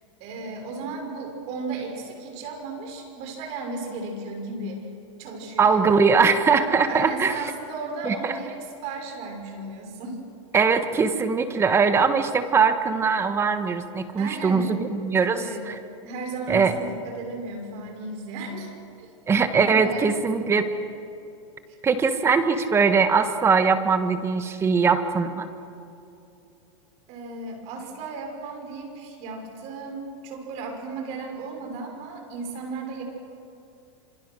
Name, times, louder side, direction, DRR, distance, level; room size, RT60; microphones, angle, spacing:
voice 1, 0.2-4.9 5.2-6.0 6.9-10.2 14.2-15.6 16.0-18.7 19.0-19.1 19.6-20.6 27.1-33.0, right 3 dB, 40° right, 3 dB, 6.2 m, -35 dB
voice 2, 5.6-7.3 8.0-8.3 10.5-15.7 16.5-16.7 19.3-20.6 21.8-25.5, right 5 dB, 15° right, 9 dB, 1.4 m, -21 dB
27.0 x 27.0 x 6.4 m, 2.7 s
supercardioid pair, 155°, 16 cm